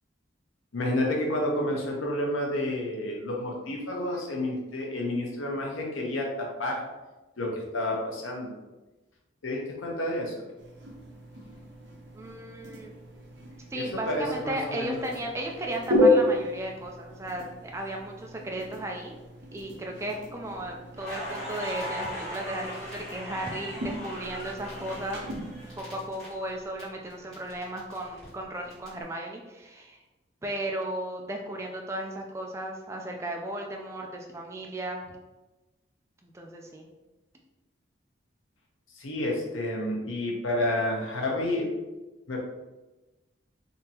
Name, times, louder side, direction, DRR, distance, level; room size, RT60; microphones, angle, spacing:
voice 1, 0.7-6.9 7.4-8.5 9.4-10.5 13.7-15.0 39.0-41.7 42.3-42.4, left 1 dB, 85° left, -1 dB, 0.8 m, -30 dB
sound 1, 10.6-26.1, left 1 dB, 60° right, 0.6 m, -32 dB
voice 2, 12.1-12.9 13.7-19.2 19.5-25.2 25.8-30.0 30.4-35.2 36.2-36.9, right 1 dB, 15° right, 0 dB, 0.3 m, -35 dB
Crackle, 21.0-26.8 27.1-28.9, equal, 5° left, 1.4 m, -39 dB
3.6 x 2.8 x 2.8 m, 1.1 s
head